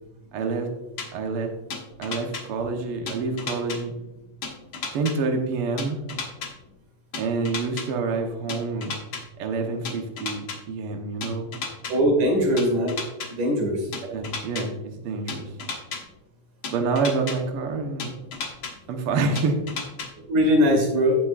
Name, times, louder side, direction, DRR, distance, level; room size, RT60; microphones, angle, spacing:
voice 1, 0.3-0.7 1.1-1.5 2.0-3.9 4.9-6.0 7.1-8.9 9.4-11.5 14.0-15.5 16.7-18.1 18.9-19.6, right 4 dB, 60° right, 3 dB, 1.6 m, -27 dB
sound 1, 1.0-1.1 1.7-2.4 3.1-3.8 4.4-5.1 5.8-6.5 7.1-7.9 8.5-9.2 9.8-10.6 11.2-11.9 12.6-13.3 13.9-14.6 15.3-16.0 16.6-17.4 18.0-18.7 19.4-20.1, left 4 dB, 50° left, 1.6 m, -32 dB
voice 2, 11.9-13.0 13.3-13.8 20.3-21.2, equal, 80° right, 0 dB, 3.8 m, -20 dB
16.0 x 6.0 x 2.4 m, 1.0 s
omnidirectional pair, 3.6 m